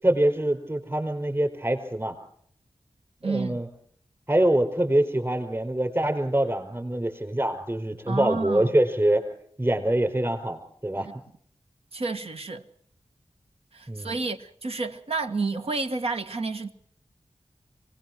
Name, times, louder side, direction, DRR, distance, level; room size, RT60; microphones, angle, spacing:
voice 1, 0.0-2.2 3.2-3.7 4.3-9.2 9.6-11.1 13.9-14.2, right 1 dB, 25° right, 5.3 m, -24 dB
voice 2, 3.2-3.6 8.1-8.8 10.9-11.1 11.9-12.6 13.7-16.7, right 3 dB, 70° right, 1.6 m, -30 dB
25.0 x 18.5 x 6.2 m
wide cardioid pair, 65°, 10 cm